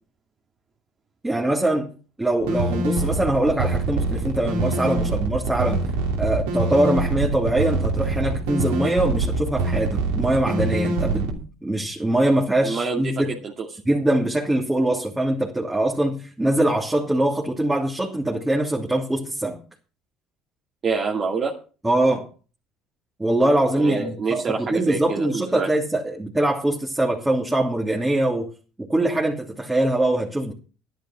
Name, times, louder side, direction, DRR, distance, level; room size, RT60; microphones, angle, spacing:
voice 1, 1.2-1.9 2.2-5.8 6.2-13.3 13.8-19.6 21.8-22.3 23.2-28.5 28.8-30.5, right 1 dB, 10° right, 2.9 m, -23 dB
sound 1, 2.4-11.3, right 2 dB, 80° right, 3.0 m, -24 dB
voice 2, 12.6-13.7 20.8-21.5 23.7-25.7, right 4 dB, 40° right, 2.5 m, -27 dB
11.0 x 10.5 x 6.0 m
supercardioid pair, 75°, 0 cm